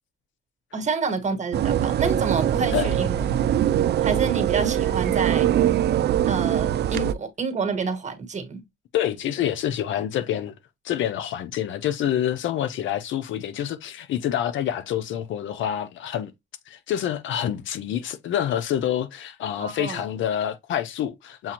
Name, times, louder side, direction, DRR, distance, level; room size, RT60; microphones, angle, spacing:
voice 1, 0.7-3.1 4.0-5.5 6.3-8.6 19.6-20.0, right 4 dB, 35° right, 1.4 m, -28 dB
sound 1, 1.5-7.1, right 11 dB, 55° right, 0.4 m, -22 dB
voice 2, 8.9-10.6 10.8-16.3 16.7-21.5, left 10 dB, 75° left, 0.6 m, -27 dB
7.2 x 2.5 x 2.9 m
cardioid pair, 90°, 20 cm